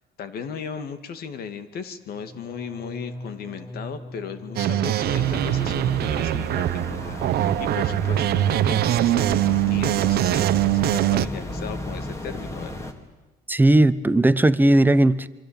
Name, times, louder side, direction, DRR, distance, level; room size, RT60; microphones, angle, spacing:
voice 1, 0.2-10.5 10.7-12.9, left 7 dB, 65° left, 10 dB, 2.5 m, -37 dB
sound 1, 2.1-8.0 8.3-8.8 9.1-9.5, left 1 dB, 35° left, 5.0 m, -43 dB
sound 2, 4.6-11.3, right 13 dB, 70° right, 1.0 m, -22 dB
sound 3, 5.1-12.9, left 1 dB, 15° left, 3.2 m, -34 dB
voice 2, 13.5-15.3, right 1 dB, 10° right, 14 dB, 1.0 m, -17 dB
27.0 x 24.5 x 8.9 m, 1.1 s
cardioid pair, 110°, 17 cm